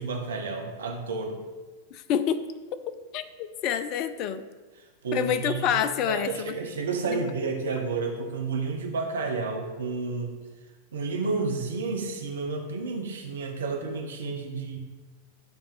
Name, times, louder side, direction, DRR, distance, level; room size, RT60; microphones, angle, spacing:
voice 1, 0.0-1.4 5.0-10.4 10.9-14.8, right 4 dB, 65° right, 3 dB, 1.0 m, -31 dB
voice 2, 1.9-2.5 2.9-4.5 5.1-6.6 7.0-7.3, left 9 dB, 40° left, 12 dB, 0.4 m, -28 dB
10.5 x 3.5 x 5.3 m, 1.3 s
figure-of-eight pair, 90°, 0 cm